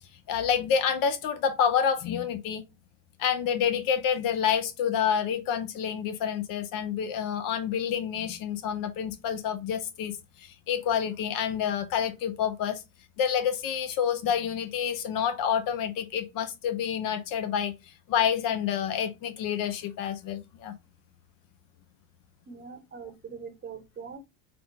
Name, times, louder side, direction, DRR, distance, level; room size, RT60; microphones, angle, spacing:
voice 1, 0.3-2.6 3.2-12.8 13.2-20.7, left 8 dB, 55° left, 0.8 m, -28 dB
voice 2, 22.5-24.2, right 6 dB, 25° right, 0.9 m, -42 dB
3.8 x 2.3 x 3.8 m
supercardioid pair, 105°, 40 cm